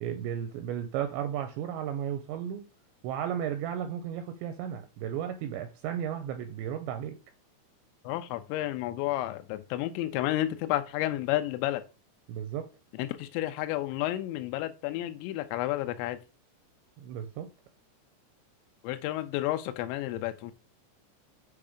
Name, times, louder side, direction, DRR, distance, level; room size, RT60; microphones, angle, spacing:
voice 1, 0.0-2.6 3.0-7.2 12.3-12.7 17.0-17.5, right 9 dB, 85° right, 2.7 m, -34 dB
voice 2, 8.0-11.8 12.9-16.2 18.8-20.5, left 15 dB, 80° left, 2.8 m, -31 dB
7.8 x 3.2 x 5.0 m
omnidirectional pair, 5.4 m